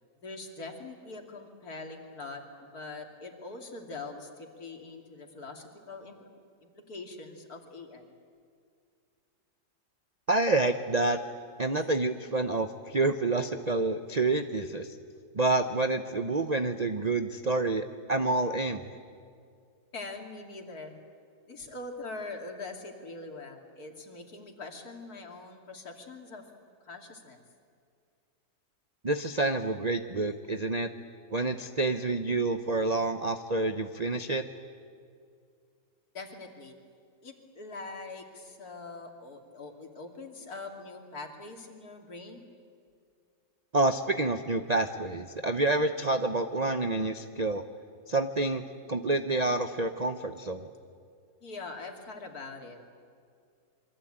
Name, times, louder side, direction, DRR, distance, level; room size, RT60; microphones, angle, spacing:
voice 1, 0.2-6.3 6.6-8.1 19.9-21.0 21.5-27.4 36.1-36.8 37.2-42.4 51.4-52.9, left 3 dB, 55° left, 3 dB, 3.0 m, -43 dB
voice 2, 10.3-11.2 11.6-14.9 15.3-18.9 29.0-30.9 31.3-34.4 43.7-47.6 48.1-48.6 48.9-50.7, right 2 dB, 40° right, 8 dB, 0.6 m, -28 dB
27.5 x 23.5 x 8.8 m, 2.3 s
omnidirectional pair, 2.0 m